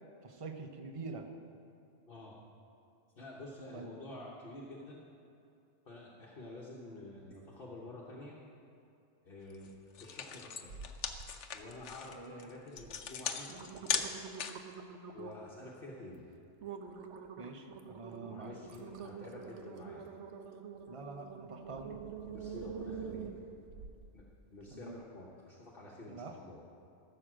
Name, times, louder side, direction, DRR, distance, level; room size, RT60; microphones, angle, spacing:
voice 1, 0.2-1.3 3.7-3.9 12.1-12.5 17.4-18.6 20.9-22.0 24.7-24.9 26.1-26.4, right 4 dB, 30° right, 5 dB, 0.9 m, -45 dB
voice 2, 3.2-5.0 5.8-8.4 9.2-9.7 10.0-10.7 11.5-14.1 15.1-16.3 18.1-20.1 22.3-23.2 24.1-24.2 24.5-26.6, left 2 dB, 55° left, -4 dB, 1.3 m, -49 dB
sound 1, 9.5-9.7 9.9-14.7, left 7 dB, 85° left, 1.1 m, -38 dB
sound 2, 10.7-11.3 11.7-12.2 12.8-12.9 13.3-15.5 16.0-16.2 16.6-24.1 24.6-24.7, right 6 dB, 80° right, 1.1 m, -46 dB
15.0 x 6.8 x 6.2 m, 2.7 s
omnidirectional pair, 1.2 m